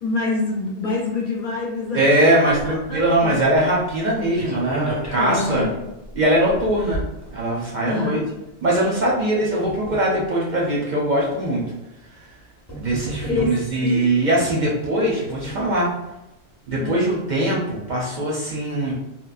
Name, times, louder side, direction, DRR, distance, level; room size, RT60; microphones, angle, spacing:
voice 1, 0.0-2.0 2.4-3.5 5.2-5.7 7.9-8.2 13.3-13.5 13.8-14.0 16.8-17.1, left 3 dB, 55° left, -3 dB, 0.7 m, -26 dB
voice 2, 1.9-5.7 6.1-7.0 7.3-8.2 8.6-11.6 12.1-12.2 12.7-15.9 16.7-18.9, right 1 dB, 55° right, -4 dB, 0.6 m, -21 dB
sound 1, 2.5-8.0 8.8-10.4 11.2-11.3 12.3-12.4 12.7-13.9 14.8-15.9 16.3-16.4 16.7-16.8, right 2 dB, 15° left, 0.7 m, -34 dB
3.1 x 2.0 x 2.3 m, 0.95 s
omnidirectional pair, 1.1 m